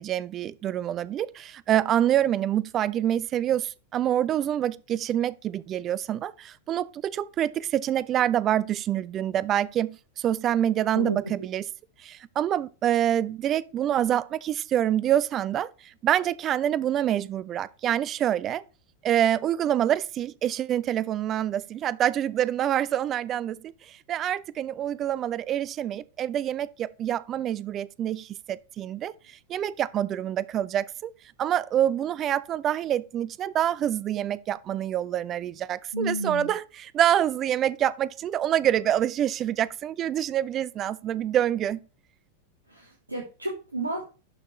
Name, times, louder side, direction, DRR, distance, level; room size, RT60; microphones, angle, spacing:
voice 1, 0.0-11.7 12.0-18.6 19.0-31.1 31.4-41.8, right 11 dB, 30° right, 0.3 m, -26 dB
voice 2, 35.9-36.5 42.7-44.0, right 1 dB, 85° right, 1.2 m, -31 dB
11.5 x 4.3 x 3.0 m
figure-of-eight pair, 90°, 0 cm